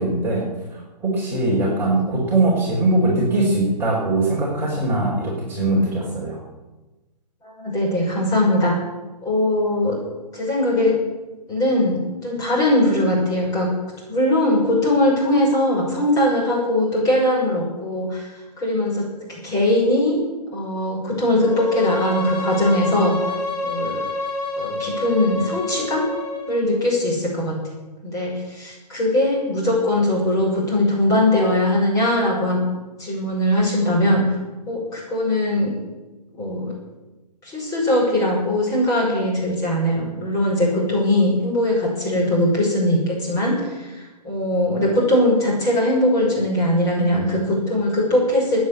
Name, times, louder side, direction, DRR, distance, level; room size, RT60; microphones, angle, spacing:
voice 1, 0.0-6.4, right 2 dB, 10° right, -6 dB, 5.1 m, -21 dB
voice 2, 7.4-8.8 9.2-10.0 10.3-10.9 11.5-13.7 14.1-18.3 18.6-20.2 20.5-23.1 23.6-24.0 24.6-26.0 26.5-27.6 28.0-32.6 33.0-34.4 34.7-35.7 36.4-36.7 37.4-48.6, left 1 dB, 15° left, -3 dB, 6.2 m, -20 dB
Bowed string instrument, 21.4-26.6, left 2 dB, 55° left, 7.6 m, -28 dB
16.5 x 9.8 x 8.8 m, 1.1 s
hypercardioid pair, 150°, 21 cm